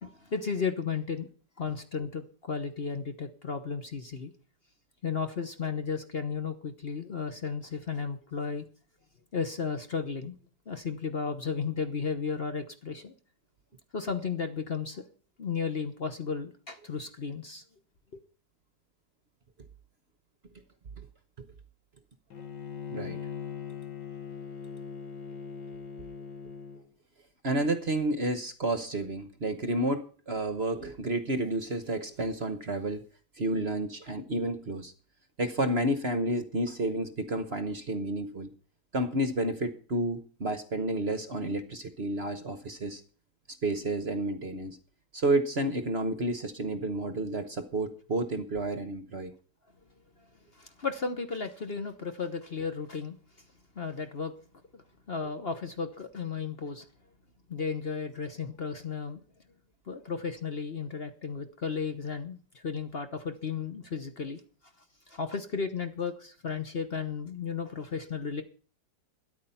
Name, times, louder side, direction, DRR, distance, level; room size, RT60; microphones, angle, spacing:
voice 1, 0.0-1.3 1.6-4.3 5.0-8.7 9.3-10.3 10.7-13.1 13.9-15.0 15.4-17.6 50.5-53.1 53.8-54.3 54.7-54.8 55.1-56.8 57.5-59.2 59.9-64.4 65.1-68.4, left 5 dB, 40° left, 8 dB, 1.1 m, -34 dB
Bowed string instrument, 22.3-26.8, left 6 dB, 85° left, 2.2 m, -40 dB
voice 2, 27.4-33.0 33.4-34.9 35.4-38.5 38.9-43.0 43.6-44.8 45.1-49.3, right 1 dB, 45° right, 10 dB, 1.1 m, -30 dB
13.5 x 10.0 x 5.6 m, 0.41 s
omnidirectional pair, 1.8 m